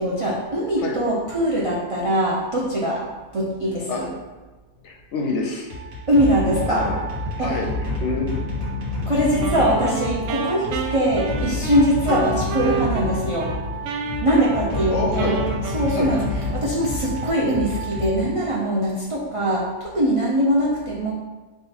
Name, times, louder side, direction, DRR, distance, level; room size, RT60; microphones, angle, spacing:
voice 1, 0.0-3.0 3.3-4.1 6.1-6.9 7.4-7.6 9.1-13.5 14.2-15.4 15.7-16.2 16.5-21.1, right 1 dB, 50° right, -5 dB, 0.3 m, -22 dB
voice 2, 4.8-5.7 6.7-7.0 7.4-8.3 12.1-12.2 14.9-15.4 15.9-16.1, left 3 dB, 65° left, 1 dB, 0.8 m, -27 dB
sound 1, 5.7-18.8, left 2 dB, 90° right, 1.7 m, -29 dB
Wind instrument woodwind instrument, 9.4-13.6 13.8-16.8, right 4 dB, 70° right, 0.8 m, -30 dB
3.7 x 3.2 x 4.3 m, 1.2 s
omnidirectional pair, 1.5 m